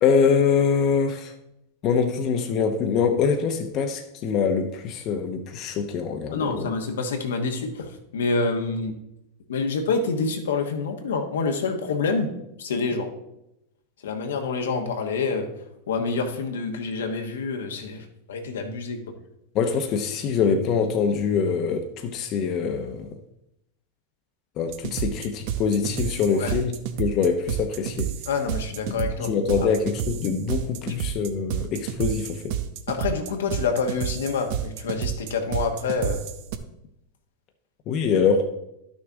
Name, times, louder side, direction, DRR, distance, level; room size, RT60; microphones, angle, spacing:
voice 1, 0.0-1.3 1.8-6.6 19.5-23.2 24.6-28.1 29.0-32.5 37.9-38.5, left 6 dB, 45° left, 0.8 m, -24 dB
voice 2, 6.3-8.9 9.5-12.3 12.6-13.1 14.0-15.5 15.9-19.0 26.3-26.5 28.3-29.3 29.6-29.7 32.9-36.2, left 4 dB, 80° left, 1.2 m, -27 dB
sound 1, 24.7-36.5, right 9 dB, 60° right, 0.8 m, -30 dB
11.0 x 6.3 x 3.6 m
hypercardioid pair, 105°, 0 cm